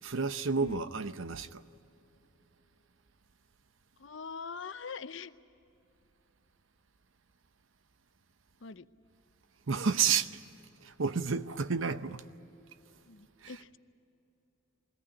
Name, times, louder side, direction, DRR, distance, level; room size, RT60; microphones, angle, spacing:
voice 1, 0.0-1.6 9.7-10.4 10.8-12.2 13.4-13.5, right 5 dB, 70° right, 0.8 m, -31 dB
voice 2, 4.0-5.3 8.6-8.9 13.1-13.8, left 5 dB, 60° left, 0.7 m, -43 dB
22.0 x 17.5 x 9.9 m
head